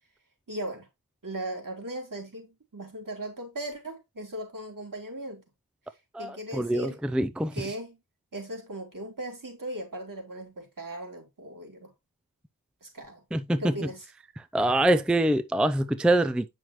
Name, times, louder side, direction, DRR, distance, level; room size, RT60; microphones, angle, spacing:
voice 1, 0.5-0.9 1.2-5.4 6.2-7.0 7.5-8.0 8.3-11.9 12.8-13.2 13.6-14.1, right 1 dB, 60° right, 3.9 m, -38 dB
voice 2, 6.1-7.5 13.3-13.7 14.5-16.5, right 1 dB, 5° right, 0.5 m, -24 dB
8.7 x 6.2 x 3.1 m
wide cardioid pair, 65°, 37 cm